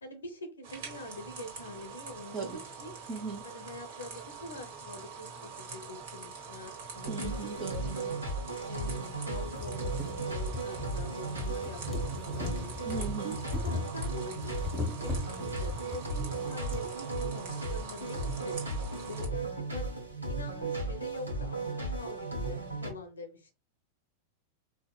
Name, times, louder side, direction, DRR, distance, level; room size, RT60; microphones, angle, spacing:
voice 1, 0.0-2.9 3.4-8.2 8.7-13.1 13.5-19.9 20.3-23.5, left 2 dB, 75° left, 6 dB, 0.6 m, -45 dB
sound 1, 0.6-19.3, right 5 dB, 50° right, 1.2 m, -45 dB
voice 2, 3.1-3.4 7.1-8.0 12.8-13.4, right 4 dB, 35° right, 3 dB, 0.6 m, -37 dB
sound 2, 6.9-22.9, right 2 dB, 80° right, 0.9 m, -36 dB
sound 3, 8.4-8.5 8.9-9.0 9.3-16.9 17.8-17.9 18.1-18.2, left 3 dB, 5° left, 0.8 m, -39 dB
4.8 x 2.1 x 2.2 m, 0.30 s
figure-of-eight pair, 90°, 0 cm